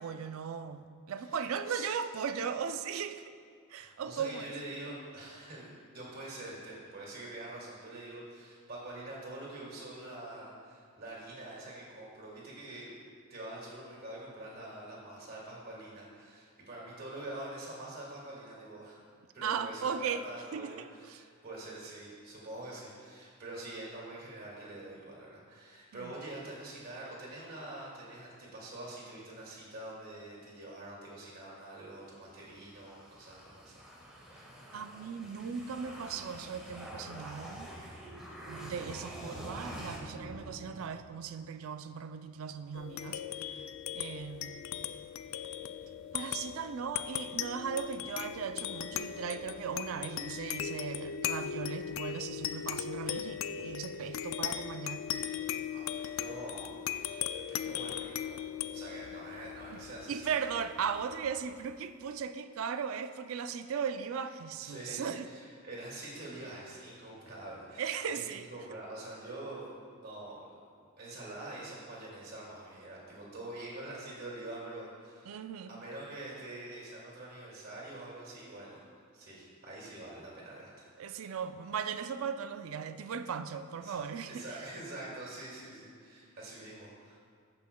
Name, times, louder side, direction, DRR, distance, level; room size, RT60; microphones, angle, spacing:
voice 1, 0.0-3.2 3.7-4.5 19.4-20.2 20.5-21.2 25.9-26.1 34.7-37.7 38.5-43.7 43.9-44.7 46.1-55.6 59.7-59.8 60.1-65.3 67.8-68.5 75.3-75.8 81.0-84.4, right 6 dB, 75° right, 10 dB, 0.4 m, -37 dB
voice 2, 3.7-19.0 19.3-33.8 55.7-60.4 64.6-70.5 71.0-81.4 83.8-84.0 84.3-87.2, right 2 dB, 45° right, -5 dB, 2.1 m, -45 dB
sound 1, 31.9-41.2, equal, 5° right, 1.2 m, -47 dB
sound 2, 42.7-61.6, left 9 dB, 70° left, 0.3 m, -38 dB
14.5 x 5.8 x 2.2 m, 2.1 s
head